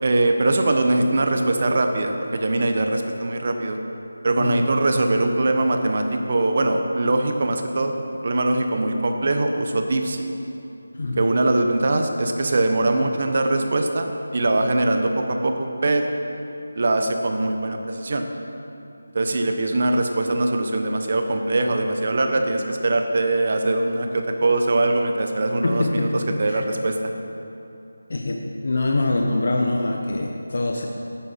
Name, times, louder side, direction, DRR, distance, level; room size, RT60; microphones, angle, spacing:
voice 1, 0.0-3.8 4.2-8.0 8.2-10.2 11.2-15.5 15.8-16.0 16.7-18.2 19.1-27.1, right 2 dB, 50° right, 5 dB, 1.1 m, -22 dB
voice 2, 11.0-11.3 25.6-26.6 28.1-30.9, left 2 dB, 60° left, 1 dB, 1.0 m, -24 dB
11.0 x 8.8 x 5.8 m, 2.8 s
figure-of-eight pair, 165°, 0 cm